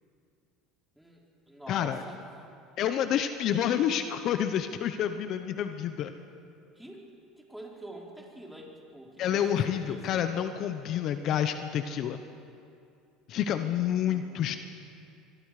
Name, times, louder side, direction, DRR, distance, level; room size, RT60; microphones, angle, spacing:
voice 1, 0.9-2.2 6.7-7.1 7.4-10.3 13.3-14.6, right 1 dB, 5° right, -2 dB, 4.0 m, -47 dB
voice 2, 1.7-2.0 2.8-6.1 9.2-12.2 13.3-14.6, left 9 dB, 50° left, 9 dB, 0.9 m, -28 dB
25.5 x 22.5 x 5.0 m, 2.5 s
supercardioid pair, 120°, 0 cm